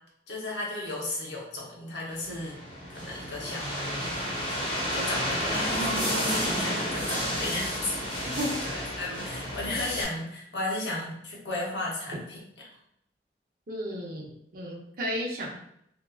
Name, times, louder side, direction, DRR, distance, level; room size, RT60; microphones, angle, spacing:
voice 1, 0.3-2.6 2.9-5.7 6.1-12.4, left 2 dB, 75° left, -4 dB, 0.9 m, -35 dB
sound 1, 2.2-10.0, equal, 25° left, 0.9 m, -31 dB
voice 2, 13.7-15.6, equal, 55° right, -3 dB, 0.6 m, -33 dB
2.8 x 2.3 x 2.3 m, 0.74 s
head